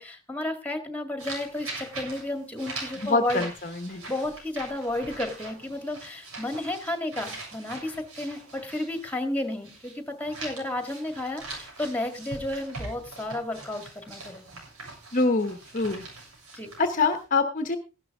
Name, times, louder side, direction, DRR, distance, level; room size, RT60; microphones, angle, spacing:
voice 1, 0.0-3.4 4.1-14.6 16.5-16.7, left 1 dB, 5° left, 7 dB, 1.8 m, -32 dB
sound 1, 1.2-9.9 10.2-17.2, right 3 dB, 85° right, 7.3 m, -42 dB
voice 2, 3.0-4.0 15.1-16.0 16.8-17.8, left 3 dB, 35° left, 8 dB, 1.0 m, -25 dB
15.5 x 11.5 x 3.5 m, 0.31 s
head